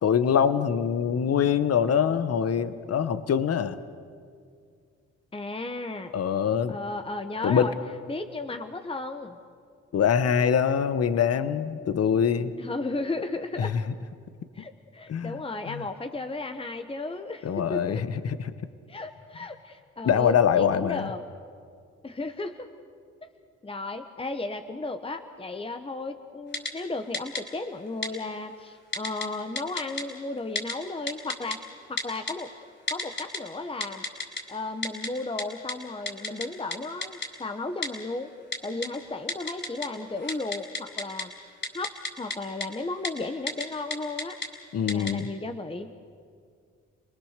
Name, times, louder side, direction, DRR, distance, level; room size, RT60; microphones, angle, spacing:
voice 1, 0.0-3.8 6.1-6.8 7.4-7.7 9.9-12.5 13.6-13.8 15.1-15.4 15.7-15.8 17.4-18.4 20.0-21.1 44.7-45.3, left 7 dB, 55° left, 12 dB, 1.0 m, -24 dB
voice 2, 5.3-6.1 6.7-7.7 8.1-9.4 12.6-13.8 14.5-18.0 18.9-21.2 22.0-22.7 23.2-23.3 23.6-31.6 31.9-32.5 32.9-34.1 34.5-38.3 38.6-41.3 41.7-44.4 44.9-45.9, left 2 dB, 20° left, 7 dB, 1.1 m, -34 dB
Typing, 26.5-26.7 27.1-27.4 28.0-28.1 28.9-29.3 29.6-30.0 30.6-30.7 31.1-31.6 32.0-32.3 32.9-33.4 33.8-34.4 34.8-35.1 35.4-35.5 35.7-35.8 36.1-36.5 36.7-36.8 37.0-37.3 37.8-37.9 38.5-38.9 39.3-39.9 40.2-41.2 41.6-42.4 42.6-42.7 43.0-43.1 43.5-43.6 43.9-44.5 44.9-45.1, left 3 dB, 35° left, 4.3 m, -30 dB
28.5 x 19.5 x 6.7 m, 2.2 s
supercardioid pair, 60°, 30 cm